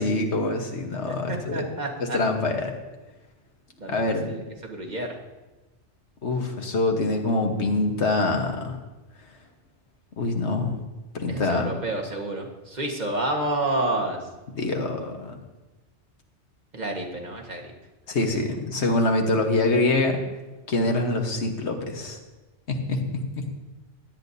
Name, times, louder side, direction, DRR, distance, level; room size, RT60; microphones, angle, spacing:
voice 1, 0.0-1.7 2.0-2.7 3.9-4.4 6.2-8.8 10.2-10.8 11.1-11.7 14.6-15.3 18.1-20.2 20.7-22.2 22.7-23.4, left 2 dB, 75° left, 3 dB, 1.5 m, -25 dB
voice 2, 1.0-2.2 3.8-4.0 4.3-5.2 11.3-14.3 16.7-17.7, right 2 dB, 40° right, 1 dB, 1.5 m, -29 dB
16.5 x 10.0 x 2.7 m, 1.1 s
omnidirectional pair, 1.2 m